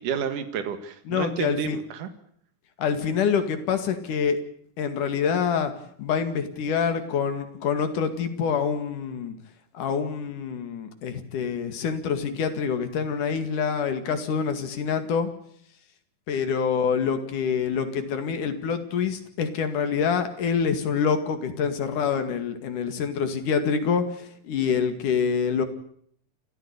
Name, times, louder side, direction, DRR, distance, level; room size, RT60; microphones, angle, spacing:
voice 1, 0.0-2.1, right 7 dB, 80° right, 10 dB, 3.3 m, -30 dB
voice 2, 1.1-1.8 2.8-4.4 4.8-5.7 6.0-9.4 9.7-15.3 16.3-25.7, left 6 dB, 75° left, 9 dB, 3.7 m, -26 dB
29.0 x 14.0 x 8.3 m, 0.65 s
omnidirectional pair, 3.7 m